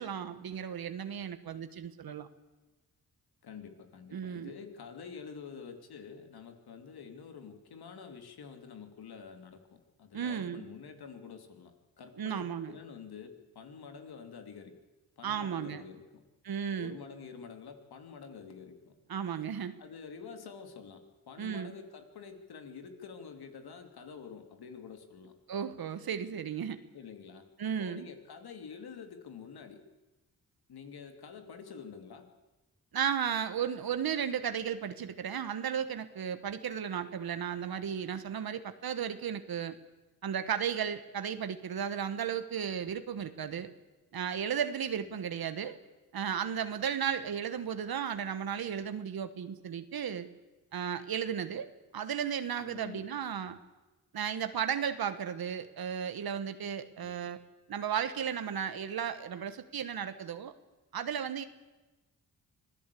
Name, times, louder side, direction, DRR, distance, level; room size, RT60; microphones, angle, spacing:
voice 1, 0.0-2.3 4.1-4.5 10.1-10.6 12.2-12.7 15.2-15.8 16.4-17.0 19.1-19.7 21.4-21.7 25.5-26.8 27.6-28.1 32.9-39.8 40.2-43.7 44.1-45.8 46.1-50.3 50.7-53.6 54.1-57.4 57.7-60.5 60.9-61.4, right 8 dB, 70° right, 10 dB, 1.3 m, -34 dB
voice 2, 3.4-14.7 15.2-16.2 16.8-18.9 19.8-25.3 26.9-27.5 27.8-29.8 30.7-32.3 52.6-53.1 53.5-53.6 57.0-57.2, left 6 dB, 85° left, 6 dB, 2.8 m, -48 dB
25.5 x 16.5 x 8.4 m, 1.1 s
cardioid pair, 90°, 37 cm